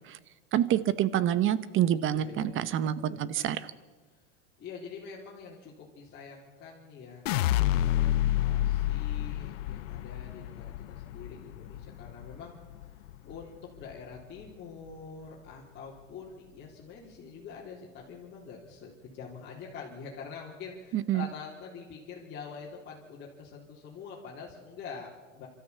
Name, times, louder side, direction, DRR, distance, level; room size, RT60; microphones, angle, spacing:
voice 1, 0.5-3.7 20.9-21.3, right 11 dB, 35° right, 16 dB, 1.0 m, -27 dB
voice 2, 2.1-3.1 4.6-12.5 13.2-25.5, left 5 dB, 30° left, -6 dB, 3.7 m, -45 dB
sound 1, 7.3-13.4 13.8-14.4, left 13 dB, 80° left, 0.9 m, -29 dB
25.5 x 13.5 x 8.4 m, 1.3 s
supercardioid pair, 125°, 37 cm